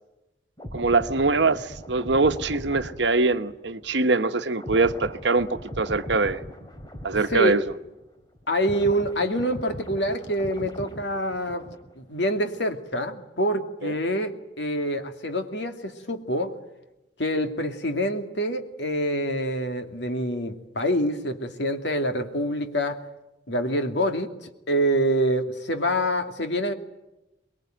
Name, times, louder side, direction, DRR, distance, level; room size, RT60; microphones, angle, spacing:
sound 1, 0.6-8.1 8.3-12.1 12.3-12.6, equal, 20° left, 3.1 m, -40 dB
voice 1, 0.7-6.4 7.0-7.6 13.8-13.9, right 3 dB, 80° right, 1.2 m, -23 dB
voice 2, 8.5-11.6 12.0-16.5 17.2-23.0 23.5-26.7, equal, 80° left, 2.6 m, -26 dB
24.0 x 21.5 x 9.2 m
head